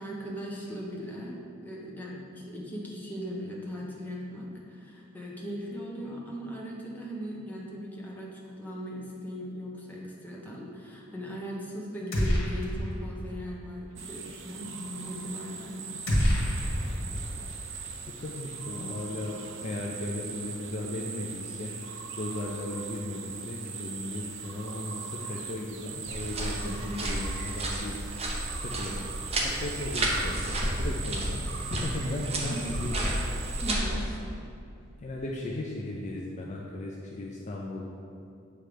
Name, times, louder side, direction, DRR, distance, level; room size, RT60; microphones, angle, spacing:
voice 1, 0.0-1.4 1.6-16.0 26.6-27.1 32.5-32.9 33.6-34.0, equal, 10° left, -4 dB, 0.9 m, -39 dB
sound 1, 12.1-13.0 13.3-13.4 16.1-17.4, equal, 70° left, 1.5 m, -27 dB
sound 2, 14.0-33.8, right 6 dB, 60° right, 0.5 m, -40 dB
voice 2, 16.4-21.7 22.1-28.0 28.6-29.0 29.4-33.1 34.4-34.5 35.0-37.9, left 1 dB, 35° left, -2 dB, 0.4 m, -36 dB
sound 3, 26.1-34.2, right 1 dB, 30° right, 0.7 m, -32 dB
7.5 x 3.2 x 5.0 m, 2.6 s
head